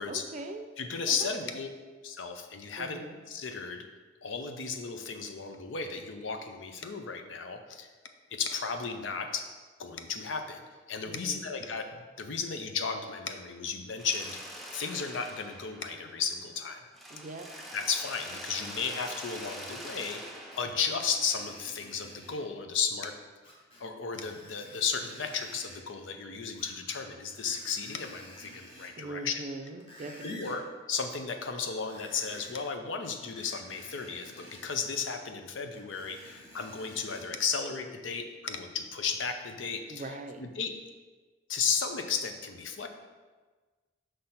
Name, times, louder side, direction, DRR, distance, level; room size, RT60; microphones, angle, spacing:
voice 1, 0.1-0.7 1.1-1.5 2.8-3.2 11.0-11.4 17.1-17.5 29.0-30.6 39.9-40.4, right 2 dB, 40° right, 6 dB, 0.5 m, -41 dB
voice 2, 0.8-1.7 2.0-3.8 4.2-7.9 8.3-9.5 9.8-14.4 14.7-16.8 17.7-20.2 20.6-23.1 23.8-29.4 30.2-30.6 30.9-40.7 41.5-42.9, left 5 dB, 75° left, 6 dB, 0.6 m, -34 dB
Mechanisms, 14.0-16.6 16.9-21.8, equal, ahead, 0.6 m, -45 dB
Screech, 20.5-22.4 23.4-23.8 24.1-25.8 26.5-27.1 27.3-29.0 29.5-30.6 31.7-32.7 33.3-34.7 35.7-37.3 37.9-38.0, equal, 30° left, 1.1 m, -51 dB
5.8 x 3.3 x 5.6 m, 1.4 s
head